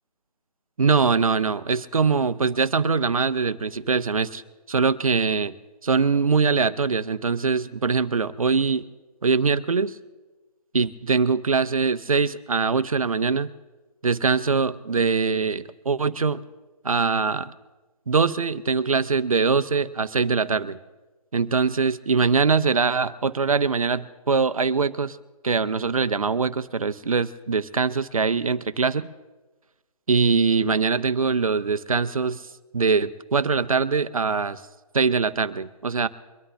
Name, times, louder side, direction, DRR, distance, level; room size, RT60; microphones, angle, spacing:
voice 1, 0.8-4.4 4.7-5.5 5.8-8.8 9.2-10.0 10.7-13.5 14.0-16.4 16.8-17.5 18.1-20.8 21.3-25.2 25.4-29.0 30.1-32.4 32.7-34.6 34.9-36.1, right 5 dB, 60° right, 12 dB, 0.7 m, -22 dB
23.5 x 11.0 x 3.4 m, 1.2 s
figure-of-eight pair, 150°, 20 cm